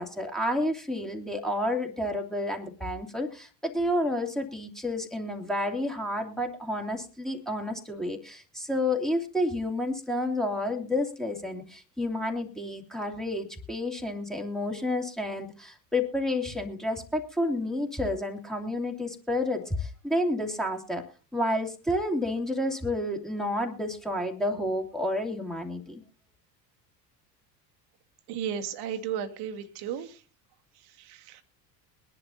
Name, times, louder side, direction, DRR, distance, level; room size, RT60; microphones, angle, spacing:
voice 1, 0.0-21.0 21.3-26.0, left 1 dB, ahead, 3 dB, 2.5 m, -30 dB
voice 2, 28.3-30.2 31.0-31.4, right 8 dB, 50° right, 6 dB, 1.7 m, -34 dB
22.5 x 11.0 x 2.7 m, 0.34 s
figure-of-eight pair, 65°, 50 cm